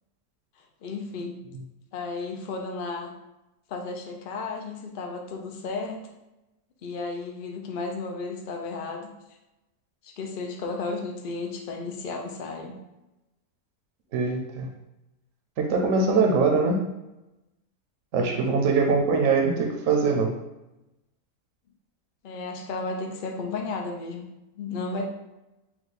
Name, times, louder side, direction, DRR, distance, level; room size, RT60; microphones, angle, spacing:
voice 1, 0.6-1.4 1.9-3.2 3.7-6.1 6.8-9.1 10.0-12.8 18.3-18.5 22.2-24.3 24.5-25.1, left 3 dB, 70° left, 2 dB, 0.5 m, -33 dB
voice 2, 14.1-14.7 15.6-16.8 18.1-20.4, right 4 dB, 65° right, 1 dB, 1.0 m, -22 dB
4.5 x 2.3 x 4.0 m, 0.95 s
omnidirectional pair, 1.6 m